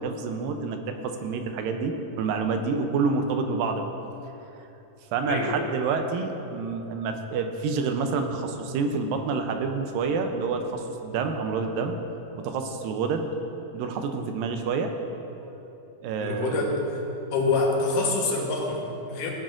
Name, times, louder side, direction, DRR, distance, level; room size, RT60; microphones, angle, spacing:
voice 1, 0.0-3.9 5.1-12.0 12.4-13.3 13.7-14.9 15.4-15.5 16.0-16.6, right 4 dB, 80° right, 5 dB, 2.3 m, -28 dB
voice 2, 5.2-5.6 16.2-17.0 17.3-19.3, left 3 dB, 70° left, -1 dB, 2.7 m, -26 dB
17.0 x 10.5 x 2.5 m, 2.9 s
omnidirectional pair, 4.1 m